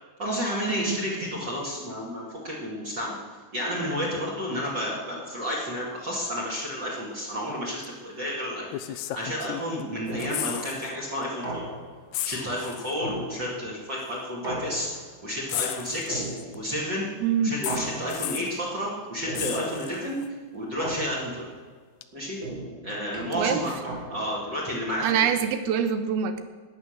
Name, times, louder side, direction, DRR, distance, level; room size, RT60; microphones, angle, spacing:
voice 1, 0.2-3.2 3.5-11.6 12.2-16.2 16.5-17.1 17.4-20.2 20.5-21.5 22.1-22.4 22.8-23.7 24.1-25.2, equal, 30° right, -3 dB, 2.5 m, -31 dB
sucking teeth, 7.8-8.0 8.7-9.8 10.1-10.9 11.2-11.4 12.1-13.0 14.0-14.1 15.5-16.6 17.6-18.6 19.3-20.3 22.0-22.1, left 13 dB, 85° left, 2.7 m, -34 dB
sound 1, 10.1-10.6 11.4-12.1 13.0-13.8 14.4-15.2 16.1-16.8 17.7-18.4 19.3-19.9 20.8-21.5 22.4-24.5, right 1 dB, 15° right, 2.0 m, -36 dB
voice 2, 17.2-17.6 23.3-23.6 25.0-26.4, right 8 dB, 75° right, 9 dB, 2.7 m, -24 dB
14.5 x 10.0 x 6.6 m, 1.5 s
omnidirectional pair, 4.7 m